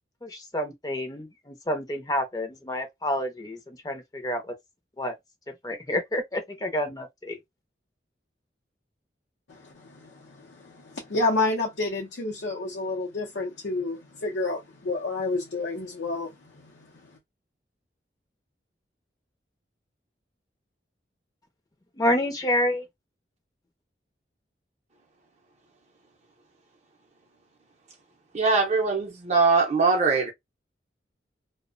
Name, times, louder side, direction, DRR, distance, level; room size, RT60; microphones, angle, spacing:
voice 1, 0.2-4.5 5.0-5.1 5.6-7.4 21.9-22.9, left 1 dB, 20° left, 0.5 m, -29 dB
voice 2, 9.5-16.9, left 3 dB, 75° left, 0.6 m, -30 dB
voice 3, 28.3-30.3, right 4 dB, 40° right, 0.5 m, -22 dB
2.4 x 2.1 x 2.5 m
head